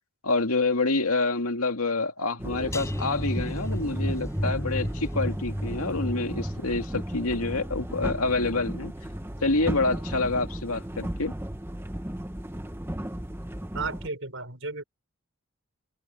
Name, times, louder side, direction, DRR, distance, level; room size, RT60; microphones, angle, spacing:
voice 1, 0.2-8.9 9.4-11.3, left 3 dB, 85° left, 2.2 m, -27 dB
sound 1, 2.4-14.1, equal, 10° right, 0.9 m, -35 dB
sound 2, 2.7-9.8 10.1-10.5 10.8-10.9, equal, 15° left, 5.8 m, -34 dB
voice 2, 13.7-14.8, right 3 dB, 60° right, 5.4 m, -33 dB
open air
head